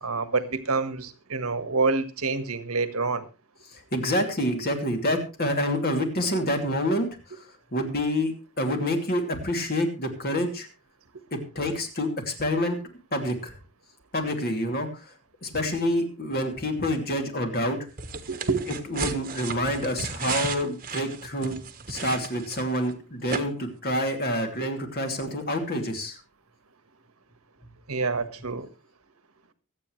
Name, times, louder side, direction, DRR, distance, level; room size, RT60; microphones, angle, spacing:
voice 1, 0.0-3.3 18.3-18.6 27.9-28.7, right 4 dB, 85° right, 11 dB, 1.5 m, -27 dB
voice 2, 3.7-10.7 11.5-12.8 13.1-13.5 14.1-15.1 15.4-17.8 18.9-21.6 21.9-26.2, left 1 dB, 45° left, 4 dB, 2.7 m, -27 dB
sound 1, 18.0-22.9 23.3-23.4, right 5 dB, 40° right, 1.3 m, -34 dB
24.5 x 8.5 x 3.2 m, 0.30 s
head